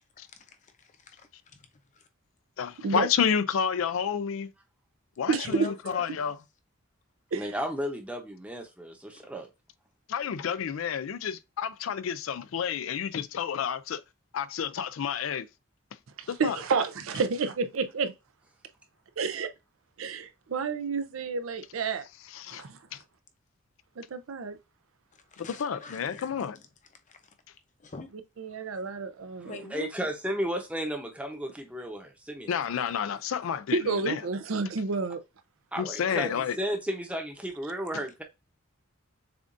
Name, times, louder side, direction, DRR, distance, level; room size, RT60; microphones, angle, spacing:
voice 1, 0.2-2.1 5.5-6.3 9.1-9.3 25.1-26.5 27.1-27.3 27.8-28.1 29.4-30.1, left 3 dB, 35° left, 0.7 m, -45 dB
voice 2, 2.6-4.5 5.2-6.4 10.1-14.0 14.3-15.5 16.3-16.6 22.3-22.6 22.9-23.0 25.5-26.6 32.5-34.2 35.8-36.6, left 7 dB, 75° left, 0.4 m, -30 dB
voice 3, 5.3-5.7 7.3-7.5 16.2-18.1 19.2-19.5 20.0-22.0 22.5-22.8 24.0-24.6 28.4-29.6 33.7-35.2, right 4 dB, 80° right, 0.5 m, -30 dB
voice 4, 7.3-9.5 29.7-32.5 35.7-38.2, equal, 5° right, 0.8 m, -33 dB
6.9 x 2.5 x 2.5 m
head